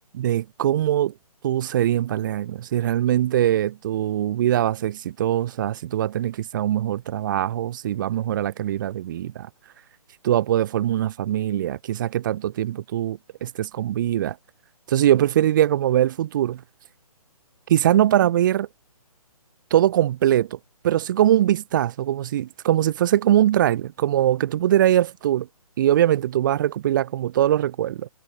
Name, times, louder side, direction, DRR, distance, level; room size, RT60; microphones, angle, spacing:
voice 1, 0.1-1.1 1.4-9.5 10.2-14.4 14.9-16.6 17.7-18.7 19.7-20.6 20.8-25.5 25.8-28.1, right 12 dB, 30° right, 1.9 m, -22 dB
figure-of-eight pair, 140°, 19 cm